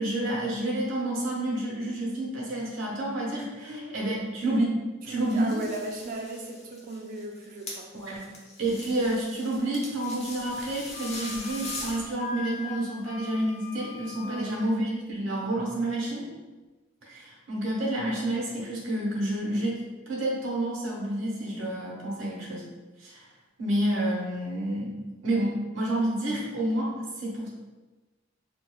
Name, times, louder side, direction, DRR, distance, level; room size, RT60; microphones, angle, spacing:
voice 1, 0.0-4.7 5.0-5.6 7.9-8.3 8.6-16.2 17.0-19.8 20.1-22.6 23.0-23.2 23.6-24.9 25.2-27.5, right 1 dB, 70° right, -5 dB, 1.0 m, -29 dB
voice 2, 3.6-3.9 5.1-7.9 14.2-14.5, right 2 dB, 45° right, 1 dB, 0.4 m, -37 dB
sound 1, 5.0-12.1, left 2 dB, 35° left, 0.7 m, -42 dB
Wind instrument woodwind instrument, 10.9-14.7, left 6 dB, 65° left, 0.3 m, -42 dB
4.4 x 2.4 x 2.2 m, 1.2 s
head